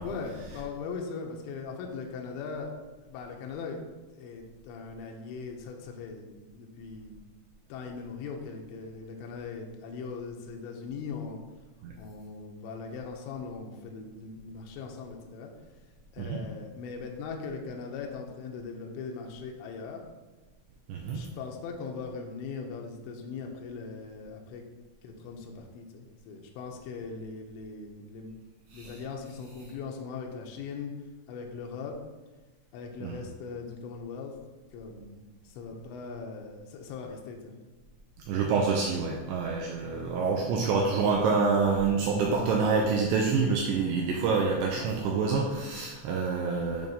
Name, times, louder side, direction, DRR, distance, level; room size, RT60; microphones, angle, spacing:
voice 1, 0.0-2.7 3.0-3.8 4.1-7.2 7.7-11.4 12.0-15.5 16.1-20.0 21.1-24.6 25.0-28.3 28.7-30.9 31.3-32.0 32.7-34.3 34.7-37.5 44.7-44.9, left 5 dB, 80° left, 1 dB, 2.9 m, -40 dB
voice 2, 20.9-21.2 28.7-28.9 33.0-33.2 38.3-46.9, right 4 dB, 80° right, 0 dB, 2.6 m, -27 dB
9.1 x 3.2 x 5.3 m, 1.2 s
omnidirectional pair, 5.6 m